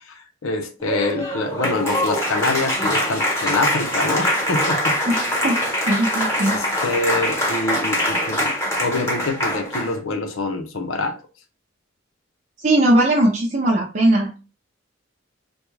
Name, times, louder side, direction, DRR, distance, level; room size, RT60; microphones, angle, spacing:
voice 1, 0.1-4.9 6.5-8.5 8.8-11.1, left 2 dB, 85° left, 0.7 m, -25 dB
Applause, 0.8-10.0, equal, 15° left, 1.0 m, -23 dB
voice 2, 5.9-6.6 12.6-14.4, right 1 dB, 40° right, 0.5 m, -18 dB
3.4 x 2.3 x 3.1 m
head